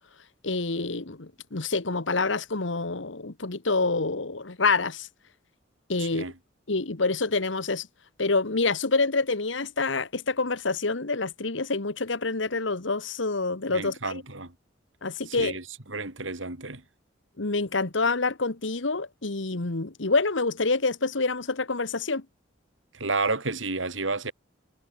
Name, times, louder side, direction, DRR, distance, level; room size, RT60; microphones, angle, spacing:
voice 1, 0.4-5.1 5.9-6.2 6.7-7.9 8.2-14.2 15.0-15.6 17.4-22.2, left 3 dB, 75° left, 1.5 m, -27 dB
voice 2, 6.0-6.3 13.7-14.5 15.3-15.6 15.9-16.8 23.0-24.3, right 3 dB, 90° right, 3.9 m, -31 dB
head